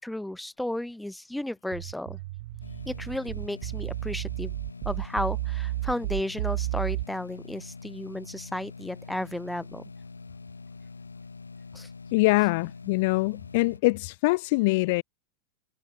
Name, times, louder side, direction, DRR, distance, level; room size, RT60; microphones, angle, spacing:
voice 1, 0.0-2.2 2.9-4.5 4.8-9.8 11.7-11.9, left 1 dB, 5° left, 6.3 m, -33 dB
sound 1, 1.7-7.1, right 18 dB, 50° right, 0.9 m, -32 dB
sound 2, 2.6-13.8, left 4 dB, 80° left, 6.3 m, -44 dB
voice 2, 12.1-15.0, left 24 dB, 50° left, 1.0 m, -24 dB
figure-of-eight pair, 90°, 0 cm